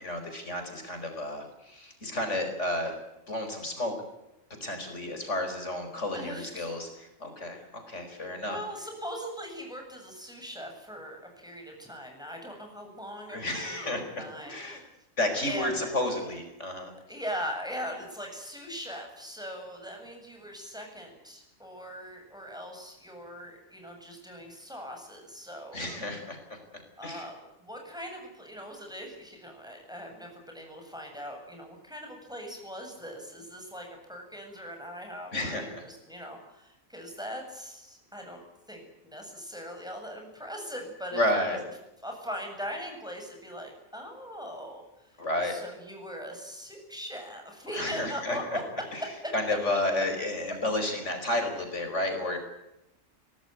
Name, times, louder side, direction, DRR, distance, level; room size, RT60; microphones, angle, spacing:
voice 1, 0.0-2.9 3.3-3.9 4.6-6.9 7.2-8.6 13.3-14.8 15.2-16.9 25.7-26.6 27.0-27.3 35.3-35.8 41.1-41.6 45.2-45.6 47.7-48.6 48.9-49.0 49.3-52.4, left 1 dB, 60° left, 5 dB, 5.2 m, -31 dB
voice 2, 6.1-6.7 8.5-14.9 15.4-15.9 17.1-25.9 27.0-38.4 38.7-41.6 42.0-48.6, equal, 5° right, 2 dB, 7.9 m, -40 dB
24.5 x 17.5 x 9.6 m, 0.88 s
omnidirectional pair, 1.4 m